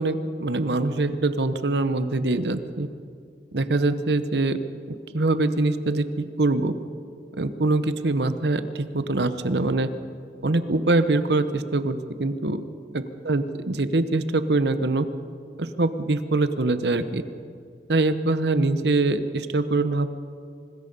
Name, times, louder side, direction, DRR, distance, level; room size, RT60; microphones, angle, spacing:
voice 1, 0.0-2.9 3.5-4.6 5.1-6.7 7.4-9.9 10.4-12.6 13.2-15.1 15.6-17.2 17.9-20.1, right 2 dB, 70° right, 11 dB, 0.9 m, -23 dB
25.0 x 20.5 x 5.4 m, 2.3 s
head